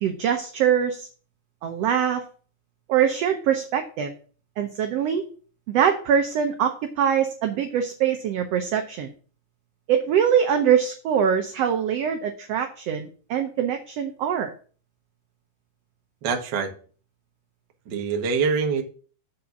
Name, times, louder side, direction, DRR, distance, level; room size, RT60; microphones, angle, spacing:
voice 1, 0.0-1.1 1.6-2.2 2.9-4.1 4.6-5.3 5.7-9.1 9.9-14.5, right 8 dB, 80° right, 6 dB, 1.4 m, -23 dB
voice 2, 16.2-16.7 17.9-18.8, right 5 dB, 65° right, 4 dB, 1.1 m, -24 dB
7.6 x 4.3 x 6.9 m, 0.41 s
omnidirectional pair, 3.7 m